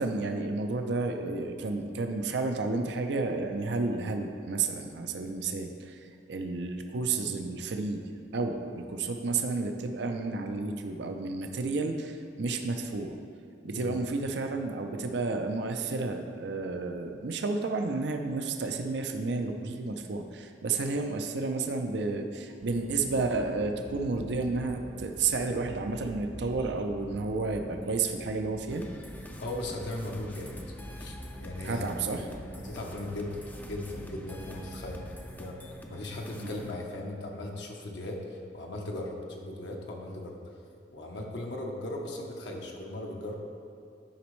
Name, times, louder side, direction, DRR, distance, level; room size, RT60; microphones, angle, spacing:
voice 1, 0.0-8.0 8.3-13.1 13.6-28.9 31.6-32.3 36.4-36.5, right 3 dB, 65° right, 5 dB, 0.5 m, -31 dB
sound 1, 22.6-35.2, equal, 85° right, 1.5 m, -45 dB
sound 2, 28.7-36.7, equal, 10° left, 0.4 m, -47 dB
voice 2, 29.4-30.6 31.0-31.8 32.2-32.3 32.6-35.6 35.9-40.4 40.9-43.4, left 1 dB, 70° left, 0 dB, 0.9 m, -38 dB
10.0 x 5.1 x 3.1 m, 2.6 s
head